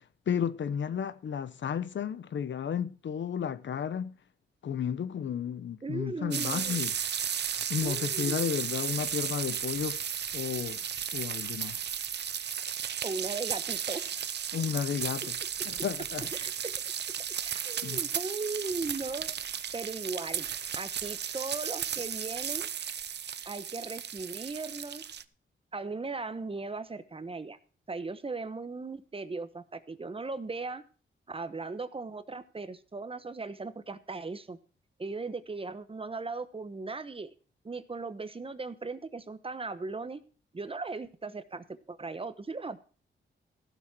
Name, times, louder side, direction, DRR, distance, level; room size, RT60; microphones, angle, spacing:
voice 1, 0.3-4.1 4.6-6.9 7.7-10.0 10.3-10.8 11.1-11.8 14.5-15.3 15.7-16.2 17.8-18.0, left 8 dB, 65° left, 0.9 m, -32 dB
voice 2, 5.8-6.9 7.8-8.4 13.0-14.1 15.2-15.3 15.6-15.7 16.3-16.9 17.4-19.3 19.7-20.5 20.7-22.7 23.4-25.0 25.7-27.6 27.9-30.8 31.3-34.6 35.0-37.3 37.6-40.2 40.5-42.8, right 3 dB, 25° right, 1.1 m, -38 dB
sound 1, 6.3-25.2, right 8 dB, 60° right, 0.8 m, -34 dB
15.5 x 7.3 x 6.1 m
cardioid pair, 95°, 20 cm